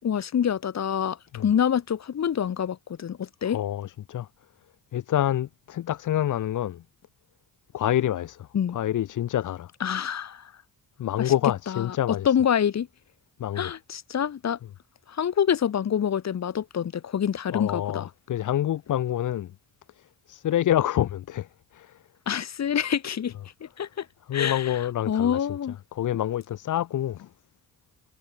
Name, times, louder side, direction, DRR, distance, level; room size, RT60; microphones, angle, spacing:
voice 1, 0.0-3.6 8.5-8.8 9.8-10.4 11.2-11.3 11.7-12.9 13.6-14.6 15.1-18.1 22.3-23.3 23.8-24.1 24.3-24.8 25.1-25.8, left 8 dB, 55° left, 4.2 m, -26 dB
voice 2, 3.4-4.3 4.9-6.8 7.7-8.5 8.7-9.7 11.0-12.3 13.4-13.7 17.5-19.5 20.3-21.5 21.7-22.0 24.3-25.5 25.9-27.3, left 12 dB, 75° left, 3.7 m, -27 dB
cardioid pair, 70°, 31 cm